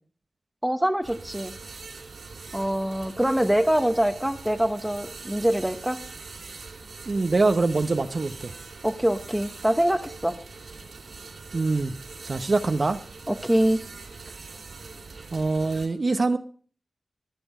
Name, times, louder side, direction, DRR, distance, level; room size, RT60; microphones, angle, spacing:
voice 1, 0.6-1.5 2.5-6.0 8.8-10.4 13.3-13.8, right 1 dB, 5° right, 9 dB, 1.1 m, -24 dB
sound 1, 1.0-15.9, right 4 dB, 85° right, 3.4 m, -42 dB
voice 2, 7.1-8.5 11.5-11.9 12.2-13.0 15.3-16.4, right 3 dB, 45° right, 9 dB, 0.9 m, -24 dB
23.0 x 7.8 x 4.9 m, 0.43 s
wide cardioid pair, 120°, 0 cm